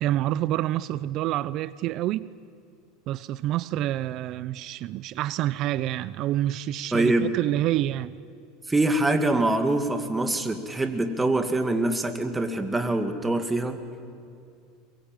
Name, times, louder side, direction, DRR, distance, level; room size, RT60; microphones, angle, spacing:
voice 1, 0.0-2.3 3.1-8.1, right 14 dB, 50° right, 0.6 m, -27 dB
voice 2, 6.9-7.3 8.7-13.8, right 2 dB, 10° right, 2.0 m, -24 dB
22.5 x 22.5 x 9.0 m
supercardioid pair, 130°, 0 cm